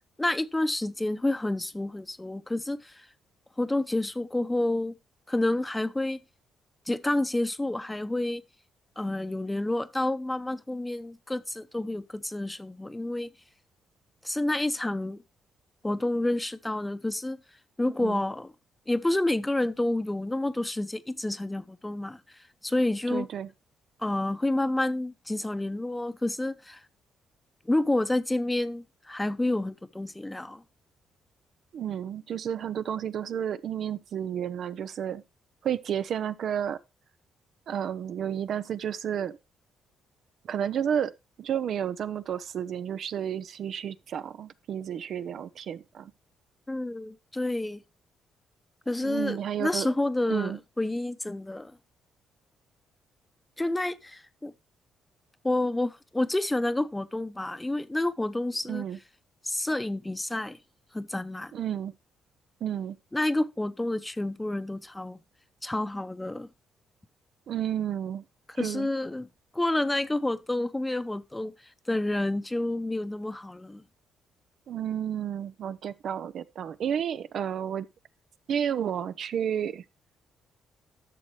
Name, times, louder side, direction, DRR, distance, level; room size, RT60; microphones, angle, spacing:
voice 1, 0.2-3.1 3.6-5.0 5.3-6.2 6.9-8.4 9.0-13.3 14.2-15.2 15.8-17.4 17.8-18.5 18.9-22.2 22.6-23.3 24.0-26.8 27.6-30.6 46.7-47.8 48.9-51.8 53.6-54.5 55.4-58.8 59.4-60.6 60.9-61.5 63.1-65.2 65.6-66.5 68.6-71.5 71.9-73.8, left 1 dB, 10° left, 0.7 m, -29 dB
voice 2, 23.1-23.5 31.7-35.2 35.6-36.8 37.7-39.4 40.4-41.1 41.4-46.1 49.0-49.9 50.3-50.6 58.7-59.0 61.5-61.9 62.6-63.0 67.5-68.2 68.5-68.9 74.7-77.9 78.5-79.8, right 9 dB, 65° right, 0.6 m, -31 dB
11.5 x 6.5 x 3.2 m
cardioid pair, 90°, 0 cm